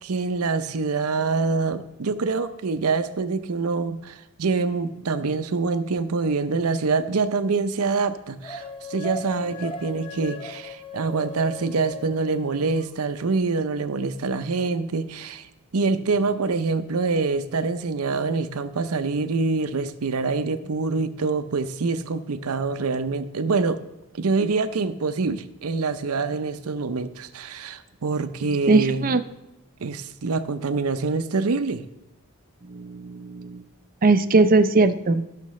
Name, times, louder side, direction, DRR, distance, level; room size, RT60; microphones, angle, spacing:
voice 1, 0.0-15.5 15.7-23.8 24.1-29.1 29.8-31.8, right 4 dB, 85° right, 11 dB, 0.6 m, -25 dB
sound 1, 8.4-12.9, left 4 dB, 25° left, 0.8 m, -38 dB
voice 2, 28.7-29.2 32.7-33.6 34.0-35.2, right 3 dB, 40° right, 11 dB, 0.5 m, -19 dB
15.0 x 6.6 x 3.2 m, 0.97 s
head